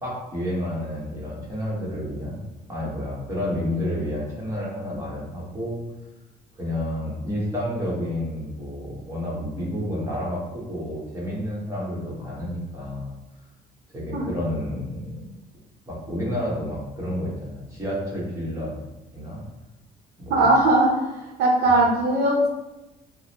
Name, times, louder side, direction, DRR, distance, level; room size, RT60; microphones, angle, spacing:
voice 1, 0.0-2.4 2.7-5.8 6.6-13.1 13.9-15.3 15.9-18.8 19.1-19.4 20.2-20.5, equal, 20° right, -6 dB, 1.3 m, -30 dB
voice 2, 20.3-21.1 21.4-22.5, right 2 dB, 65° right, -2 dB, 0.7 m, -19 dB
3.6 x 2.1 x 2.9 m, 1.0 s
cardioid pair, 110°, 17 cm